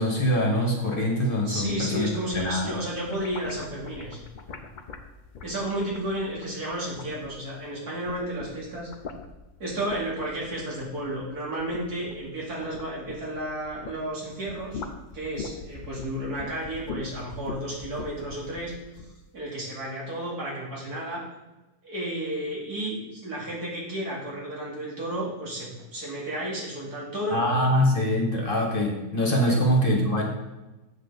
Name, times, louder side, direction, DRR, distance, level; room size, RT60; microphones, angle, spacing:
voice 1, 0.0-2.7 27.3-30.2, equal, 35° left, 0 dB, 1.5 m, -24 dB
sound 1, 1.5-7.7 8.0-14.0 14.3-19.1, left 4 dB, 55° left, 0.5 m, -42 dB
voice 2, 1.5-4.2 5.4-8.9 9.6-14.8 15.1-18.7 19.3-21.2 21.8-27.6 29.4-29.6, right 1 dB, 80° right, -5 dB, 3.0 m, -32 dB
8.0 x 7.7 x 4.0 m, 1.1 s
omnidirectional pair, 1.6 m